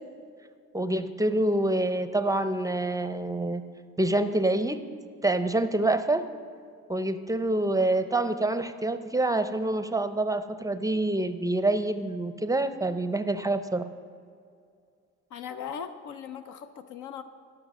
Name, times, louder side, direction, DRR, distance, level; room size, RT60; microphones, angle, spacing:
voice 1, 0.7-3.6 4.0-4.8 5.2-6.3 6.9-13.9, right 2 dB, 10° right, 10 dB, 0.5 m, -26 dB
voice 2, 15.3-17.2, left 8 dB, 80° left, 10 dB, 0.6 m, -39 dB
14.5 x 5.8 x 6.1 m, 2.3 s
cardioid pair, 90°, 30 cm